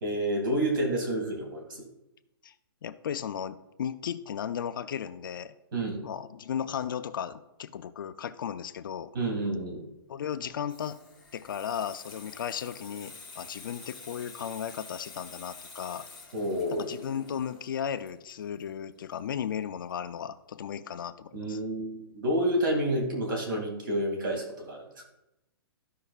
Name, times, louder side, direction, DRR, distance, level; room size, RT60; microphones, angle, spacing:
voice 1, 0.0-1.8 5.7-6.0 9.1-9.8 16.3-16.9 21.3-25.0, right 1 dB, 55° right, 1 dB, 2.4 m, -29 dB
voice 2, 2.8-5.5 6.0-9.1 10.1-11.0 11.3-16.1 16.7-21.6, left 8 dB, 60° left, 11 dB, 0.5 m, -35 dB
Water tap faucet / Sink (filling or washing), 10.3-19.6 19.9-20.2, left 4 dB, ahead, 1.3 m, -49 dB
14.0 x 5.5 x 2.4 m, 0.91 s
hypercardioid pair, 170°, 13 cm